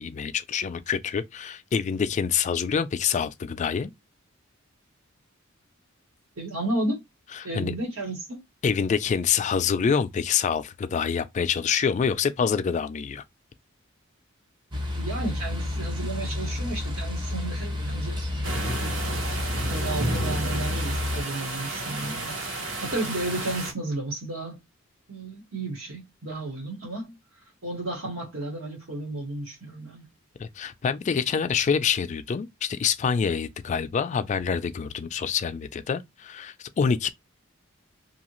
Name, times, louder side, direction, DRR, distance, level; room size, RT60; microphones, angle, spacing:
voice 1, 0.0-3.9 7.4-7.7 8.6-13.2 30.4-37.1, left 6 dB, 35° left, 0.3 m, -26 dB
voice 2, 6.4-7.0 7.4-8.4 14.9-18.2 18.6-19.0 19.7-22.4 22.7-24.6 25.1-27.2 27.6-30.0, right 2 dB, 80° right, 1.3 m, -33 dB
sound 1, 14.7-21.2, left 1 dB, 20° right, 0.6 m, -30 dB
sound 2, 18.4-23.7, right 2 dB, 65° right, 0.9 m, -32 dB
2.8 x 2.4 x 3.0 m
head